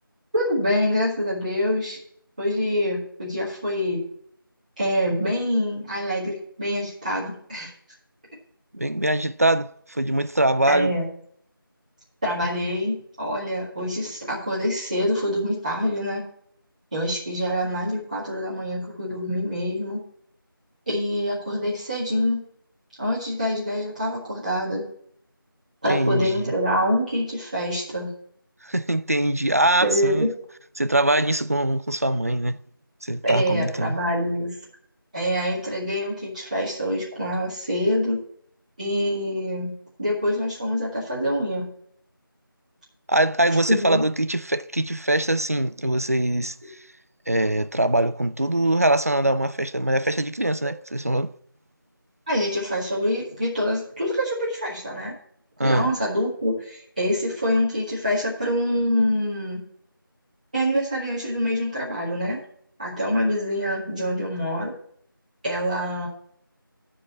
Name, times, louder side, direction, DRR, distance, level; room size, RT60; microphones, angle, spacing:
voice 1, 0.3-2.0 2.4-4.0 4.8-7.7 10.7-11.1 12.2-16.3 16.9-20.0 20.9-22.4 23.0-24.8 25.8-28.1 29.8-30.3 33.2-34.6 35.1-38.2 38.8-39.7 40.0-41.7 43.7-44.0 52.3-55.1 55.6-59.6 60.5-62.4 62.8-64.7 65.4-66.1, equal, 20° right, 1.8 m, -25 dB
voice 2, 8.7-10.9 25.9-26.5 28.6-30.3 30.8-32.6 33.0-34.0 43.1-46.8 47.3-51.3 55.6-55.9, right 1 dB, 40° right, 0.4 m, -23 dB
10.5 x 4.8 x 7.1 m
figure-of-eight pair, 175°, 12 cm